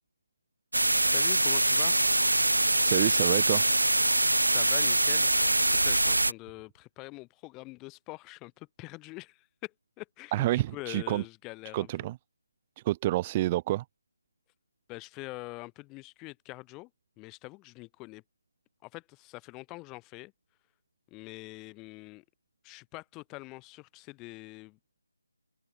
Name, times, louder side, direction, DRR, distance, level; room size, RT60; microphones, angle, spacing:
sound 1, 0.7-6.3, right 1 dB, 80° right, 0.7 m, -24 dB
voice 1, 1.0-2.0 4.4-11.9 14.9-16.9 17.2-18.2 18.8-20.3 21.1-22.2 22.6-24.8, left 23 dB, 15° left, 4.1 m, -44 dB
voice 2, 2.9-3.6 10.3-11.2 11.7-12.1 12.8-13.8, right 16 dB, 20° right, 0.3 m, -28 dB
figure-of-eight pair, 155°, 0 cm